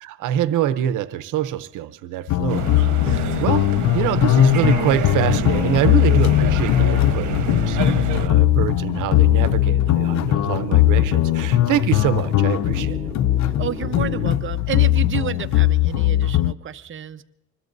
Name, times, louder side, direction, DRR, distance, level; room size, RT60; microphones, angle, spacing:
voice 1, 0.0-2.7 3.0-3.7 3.9-13.1, right 11 dB, 90° right, 12 dB, 0.7 m, -25 dB
sound 1, 2.3-16.5, left 14 dB, 65° left, 0.5 m, -19 dB
sound 2, 2.5-8.3, right 9 dB, 75° right, 1.2 m, -28 dB
voice 2, 3.0-3.5 13.6-17.2, right 10 dB, 40° right, 8 dB, 0.8 m, -31 dB
sound 3, 9.2-14.3, right 2 dB, 20° right, 5.4 m, -37 dB
25.0 x 21.0 x 2.6 m, 0.92 s
cardioid pair, 90°, 30 cm